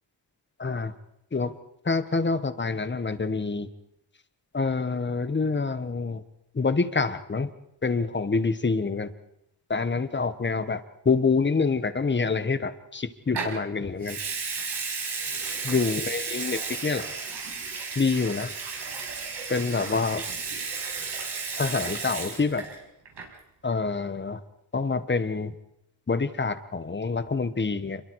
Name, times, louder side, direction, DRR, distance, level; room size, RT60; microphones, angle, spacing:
voice 1, 0.6-0.9 1.3-1.5 1.8-3.7 4.5-6.2 6.5-7.5 7.8-9.1 9.7-14.2 15.6-17.1 17.9-18.5 19.5-20.3 21.5-22.7 23.6-24.4 24.7-25.5 26.1-28.0, left 4 dB, 25° left, 11 dB, 1.4 m, -26 dB
Water tap faucet / Sink (filling or washing) / Liquid, 13.3-13.6 14.0-22.8 23.0-23.4, right 5 dB, 70° right, 5.9 m, -33 dB
28.5 x 22.5 x 4.8 m, 0.83 s
wide cardioid pair, 155°, 44 cm